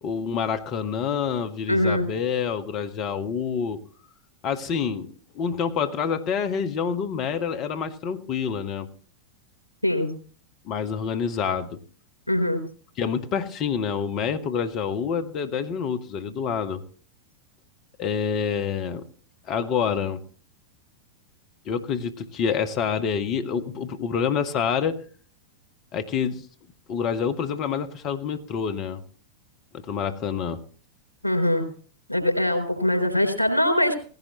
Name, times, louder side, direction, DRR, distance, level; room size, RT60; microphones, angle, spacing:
voice 1, 0.0-3.8 4.4-8.9 10.6-11.8 13.0-16.8 18.0-19.0 19.5-20.2 21.6-25.0 25.9-26.4 26.9-29.0 29.7-30.6, left 7 dB, 35° left, 10 dB, 1.5 m, -27 dB
voice 2, 1.7-2.1 9.8-10.1 12.3-12.6 31.2-31.6 32.1-34.0, left 1 dB, 90° right, 4 dB, 3.8 m, -22 dB
18.0 x 16.0 x 3.1 m, 0.43 s
figure-of-eight pair, 90°, 0 cm